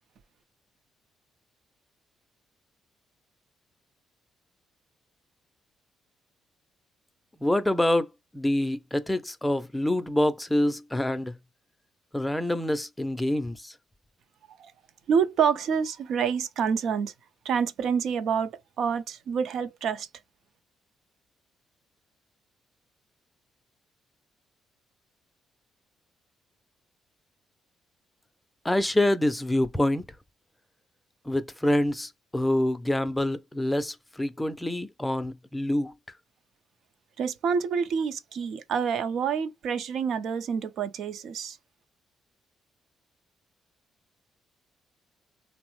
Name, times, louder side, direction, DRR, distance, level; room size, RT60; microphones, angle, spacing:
voice 1, 7.4-8.1 8.3-11.4 12.1-13.7 28.6-30.0 31.3-35.9, left 1 dB, 10° left, 0.4 m, -26 dB
voice 2, 15.1-17.1 17.4-20.1 37.2-41.6, right 6 dB, 75° right, 0.5 m, -27 dB
3.1 x 2.0 x 3.0 m
cardioid pair, 90°, 0 cm